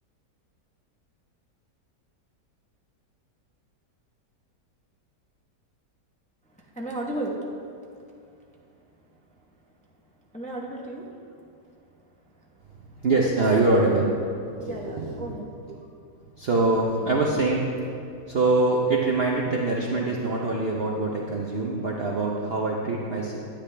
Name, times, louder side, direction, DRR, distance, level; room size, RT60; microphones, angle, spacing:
voice 1, 6.6-7.4 10.3-11.1 13.6-13.8 14.6-15.5, right 1 dB, 5° left, -2 dB, 0.7 m, -34 dB
voice 2, 13.0-15.3 15.7-15.8 16.4-17.6 18.3-23.4, right 2 dB, 50° right, -2 dB, 0.7 m, -24 dB
10.0 x 10.0 x 3.3 m, 2.4 s
omnidirectional pair, 1.8 m